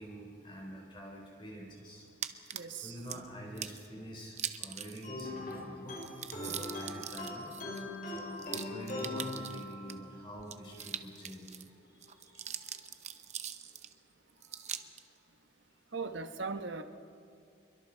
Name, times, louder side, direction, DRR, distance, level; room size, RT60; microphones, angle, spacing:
voice 1, 0.0-2.1 2.3-2.4 2.7-6.0 6.4-7.7 8.1-13.0 14.3-14.8, equal, 25° left, -1 dB, 3.7 m, -47 dB
sound 1, 2.2-3.2 3.6-3.9 4.3-5.2 5.5-5.6 5.9-9.9 10.4-11.7 12.0-13.9 14.4-15.0, right 9 dB, 35° right, 0.8 m, -42 dB
voice 2, 2.5-3.0 15.9-16.8, right 4 dB, 65° right, 8 dB, 1.2 m, -38 dB
sound 2, 5.0-10.1, left 2 dB, 45° left, 4.9 m, -41 dB
27.5 x 23.0 x 4.5 m, 2.6 s
head